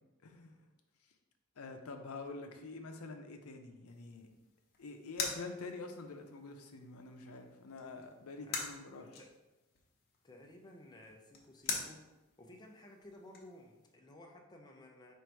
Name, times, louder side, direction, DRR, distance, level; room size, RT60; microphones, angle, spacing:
voice 1, 0.2-0.6 1.6-4.3 4.8-9.1, left 3 dB, 75° left, 5 dB, 0.6 m, -46 dB
sound 1, 3.9-13.9, left 4 dB, 45° left, 0.8 m, -46 dB
voice 2, 9.0-9.3 10.2-12.0 12.4-15.1, left 1 dB, 20° left, 1 dB, 0.5 m, -55 dB
4.6 x 2.6 x 4.5 m, 1.0 s
head